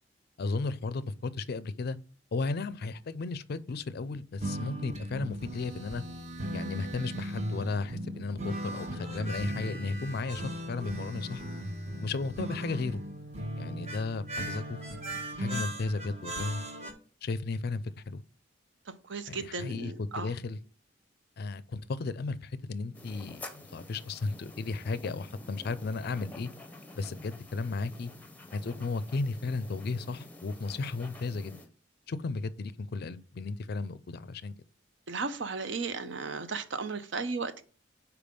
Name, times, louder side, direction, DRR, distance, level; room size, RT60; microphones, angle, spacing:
voice 1, 0.4-2.0 2.3-6.0 6.5-11.4 12.0-13.0 13.6-14.8 15.4-16.6 17.2-18.2 19.3-20.6 21.4-26.5 26.9-28.1 28.5-31.6 32.1-34.5, left 3 dB, 55° left, 0.4 m, -34 dB
sound 1, 4.4-16.9, equal, 35° right, 1.0 m, -37 dB
voice 2, 19.1-20.3 35.1-37.6, right 4 dB, 65° right, 0.7 m, -35 dB
sound 2, 22.9-31.7, left 2 dB, 10° left, 0.7 m, -49 dB
5.1 x 4.7 x 5.2 m
head